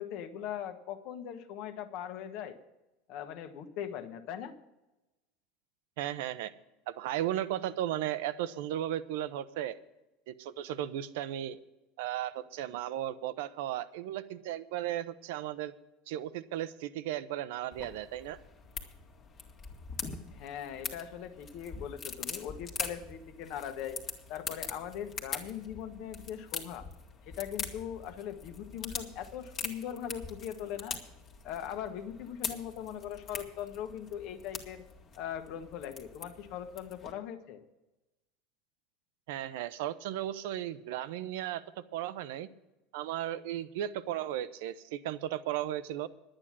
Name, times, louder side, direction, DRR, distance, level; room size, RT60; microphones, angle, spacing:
voice 1, 0.0-2.6 3.1-4.5 20.3-24.0 24.3-26.9 27.3-31.0 31.4-34.8 35.1-37.6, left 9 dB, 55° left, 8 dB, 1.3 m, -40 dB
voice 2, 6.0-6.5 6.9-9.8 10.3-11.6 12.0-15.7 16.1-18.4 39.3-41.6 41.9-42.5 42.9-46.1, right 12 dB, 75° right, 14 dB, 0.7 m, -35 dB
sound 1, 17.7-37.1, left 5 dB, 30° left, 1.6 m, -43 dB
11.0 x 8.9 x 7.4 m, 1.0 s
supercardioid pair, 150°, 0 cm